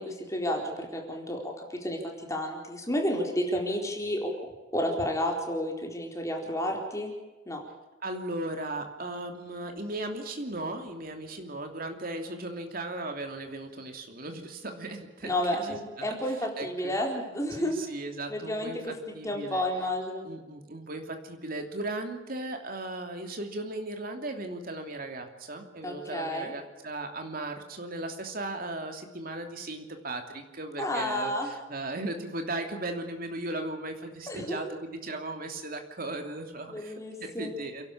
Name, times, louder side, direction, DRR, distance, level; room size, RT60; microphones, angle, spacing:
voice 1, 0.0-2.0 2.3-4.3 4.7-7.1 7.5-7.6 15.2-17.8 18.3-18.9 19.2-20.3 25.8-26.5 30.8-31.5 34.3-34.6 36.7-37.5, left 1 dB, 15° left, 0 dB, 4.2 m, -31 dB
voice 2, 8.0-16.1 16.6-16.9 17.5-19.6 20.2-36.9 37.2-37.9, right 2 dB, 45° right, 4 dB, 3.0 m, -37 dB
29.5 x 12.0 x 8.7 m, 1.2 s
head